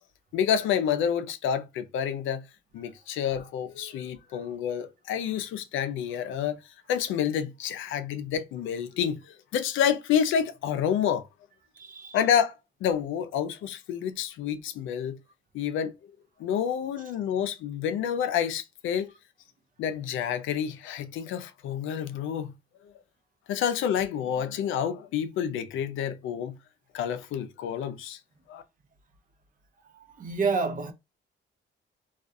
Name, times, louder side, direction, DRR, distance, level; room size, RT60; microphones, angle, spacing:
voice 1, 0.3-2.4 2.7-6.5 6.9-9.2 9.5-11.2 12.1-12.5 12.8-15.2 15.5-15.9 16.4-19.1 19.8-22.5 23.5-26.5 26.9-28.2 28.5-28.6, left 8 dB, 80° left, 0.5 m, -28 dB
voice 2, 11.8-12.2 29.9-30.9, right 4 dB, 45° right, 0.6 m, -29 dB
2.3 x 2.3 x 2.6 m
cardioid pair, 90°, 20 cm